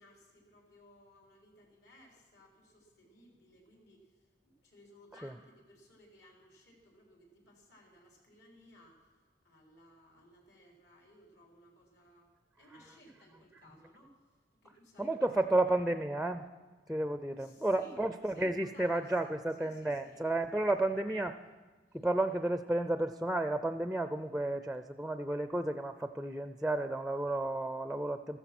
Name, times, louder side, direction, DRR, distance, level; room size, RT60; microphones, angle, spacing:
voice 1, 0.0-9.0 9.4-14.2 14.6-15.3 17.4-18.0 18.3-19.3 19.6-20.2 20.9-21.0, equal, 75° left, 0 dB, 3.9 m, -60 dB
voice 2, 15.0-16.5 16.9-21.4 21.9-28.4, right 2 dB, ahead, 10 dB, 0.4 m, -32 dB
14.0 x 14.0 x 6.0 m, 1.4 s
head